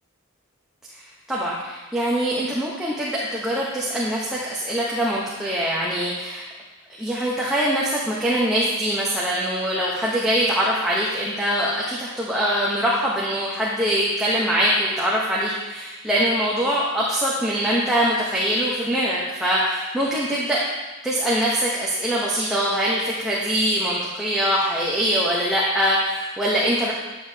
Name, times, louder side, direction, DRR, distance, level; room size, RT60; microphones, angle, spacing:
voice 1, 1.3-6.4 7.0-20.6 21.0-26.9, equal, ahead, -7 dB, 0.8 m, -23 dB
9.2 x 6.9 x 2.8 m, 1.2 s
head